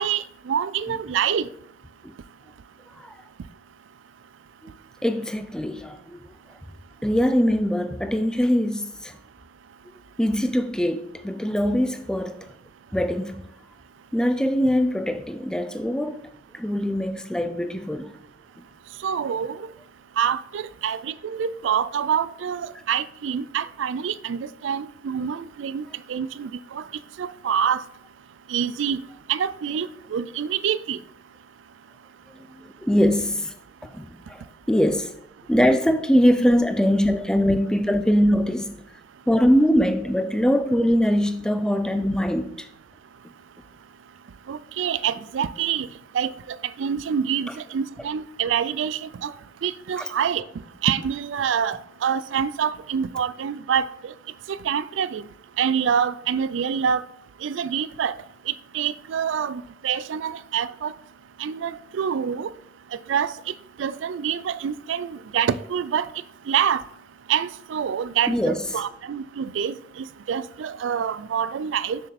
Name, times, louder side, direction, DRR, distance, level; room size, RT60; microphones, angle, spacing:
voice 1, 0.0-1.5 19.0-19.7 20.2-26.8 27.2-27.8 28.5-29.0 29.3-31.0 44.5-45.9 46.1-49.3 49.6-50.4 50.8-54.1 54.5-55.2 55.6-57.0 57.4-58.2 58.7-60.9 61.4-62.5 63.1-66.1 66.5-66.8 67.3-72.0, right 8 dB, 80° right, 0.3 m, -26 dB
voice 2, 5.0-6.3 7.0-9.1 10.2-12.4 12.9-13.4 14.1-16.3 16.5-18.1 32.4-33.5 33.8-35.1 35.5-38.8 39.3-42.7 50.0-50.1 68.3-68.6, equal, 5° left, 0.4 m, -22 dB
6.6 x 6.4 x 4.1 m
head